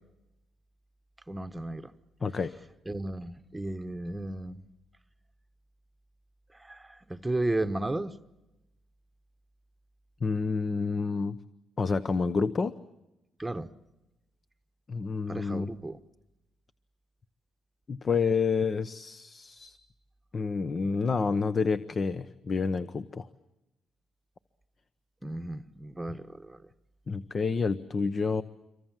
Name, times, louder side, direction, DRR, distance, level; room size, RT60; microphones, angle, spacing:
voice 1, 1.3-1.9 2.9-4.6 6.6-6.8 7.1-8.1 13.4-13.7 15.3-16.0 25.2-26.6, right 2 dB, 10° right, 1.1 m, -34 dB
voice 2, 10.2-11.4 11.8-12.7 14.9-15.7 17.9-19.8 20.3-23.3 27.1-28.4, left 5 dB, 40° left, 0.9 m, -29 dB
27.0 x 24.0 x 7.5 m
cardioid pair, 90°, 0 cm